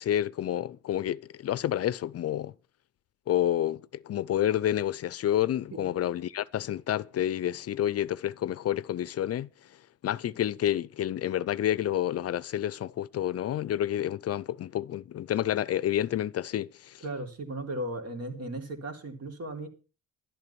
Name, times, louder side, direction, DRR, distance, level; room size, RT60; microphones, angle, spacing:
voice 1, 0.0-2.5 3.3-9.5 10.0-17.0, left 11 dB, 55° left, 0.5 m, -29 dB
voice 2, 17.0-19.7, right 1 dB, 55° right, 3.6 m, -36 dB
11.5 x 11.0 x 5.8 m
cardioid pair, 90°, 30 cm